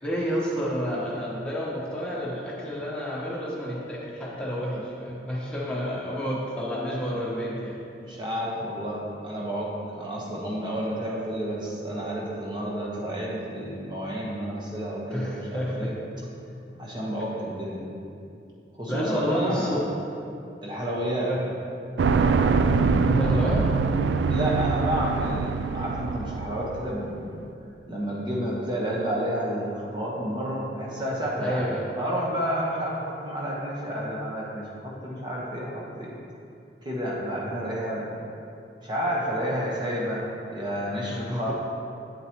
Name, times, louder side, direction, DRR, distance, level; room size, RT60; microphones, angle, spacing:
voice 1, 0.0-7.8 15.1-15.9 18.9-19.9 21.3-21.4 23.1-23.6 31.4-31.9 41.1-41.5, equal, 5° left, -7 dB, 1.2 m, -29 dB
voice 2, 8.0-15.9 16.8-17.9 18.8-19.8 20.6-21.3 24.3-27.3 27.9-31.7 32.0-36.2 36.8-38.1 38.8-41.5, equal, 25° right, -5 dB, 1.2 m, -30 dB
sound 1, 22.0-26.9, right 4 dB, 70° right, 0.3 m, -24 dB
8.2 x 7.9 x 3.1 m, 2.6 s
head